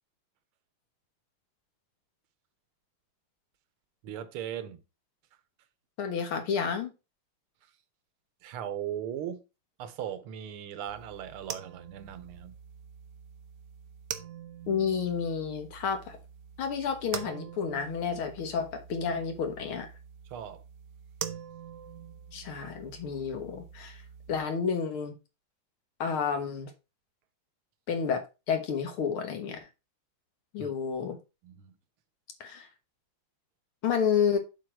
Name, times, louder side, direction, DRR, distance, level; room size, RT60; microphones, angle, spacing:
voice 1, 4.0-4.8 7.6-7.7 8.4-9.4 9.8-12.6 20.2-20.7 30.6-30.7 31.4-31.8, right 10 dB, 90° right, 1.7 m, -38 dB
voice 2, 6.0-6.9 14.7-16.2 16.6-19.9 22.3-24.0 24.3-25.2 26.0-26.7 27.9-29.6 30.5-31.2 32.4-32.7 33.8-34.4, left 6 dB, 80° left, 2.2 m, -30 dB
sound 1, 10.9-24.4, right 9 dB, 65° right, 1.2 m, -44 dB
7.6 x 4.1 x 4.5 m
omnidirectional pair, 2.3 m